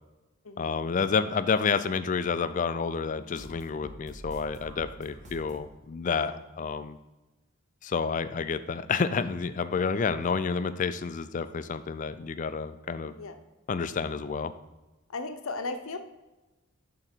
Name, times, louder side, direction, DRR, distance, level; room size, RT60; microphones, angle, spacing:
voice 1, 0.6-7.0 7.8-13.1 13.7-14.5, left 5 dB, 35° left, 13 dB, 0.3 m, -29 dB
sound 1, 3.3-5.7, equal, 35° right, 1.2 m, -46 dB
voice 2, 15.1-16.0, left 3 dB, 75° left, 7 dB, 0.7 m, -36 dB
10.5 x 3.9 x 4.3 m, 1.1 s
head